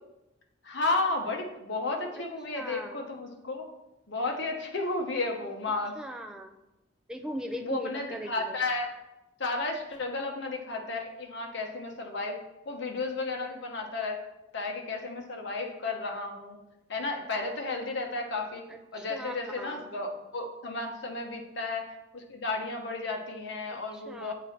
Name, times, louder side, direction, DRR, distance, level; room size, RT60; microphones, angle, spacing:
voice 1, 0.6-3.7 4.1-5.9 7.6-8.9 9.4-12.4 12.7-14.2 14.5-16.6 16.9-18.6 18.9-21.9 22.1-24.3, left 3 dB, 55° left, 2 dB, 1.0 m, -33 dB
voice 2, 2.5-3.0 6.0-6.5 7.1-8.6 18.9-19.9 23.7-24.3, equal, 5° right, 3 dB, 0.4 m, -39 dB
7.6 x 4.1 x 4.3 m, 0.94 s
head